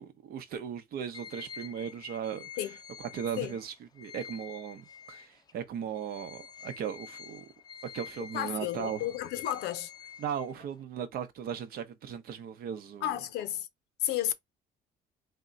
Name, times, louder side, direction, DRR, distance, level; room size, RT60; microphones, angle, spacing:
voice 1, 0.0-2.5 3.0-7.5 7.9-9.1 10.2-13.2, right 8 dB, 65° right, 0.8 m, -37 dB
sound 1, 1.1-5.5 5.9-10.8, left 7 dB, 25° left, 0.4 m, -48 dB
voice 2, 8.3-9.9 13.0-13.7 14.0-14.3, left 12 dB, 85° left, 0.6 m, -32 dB
3.7 x 2.2 x 3.8 m
cardioid pair, 110°, 17 cm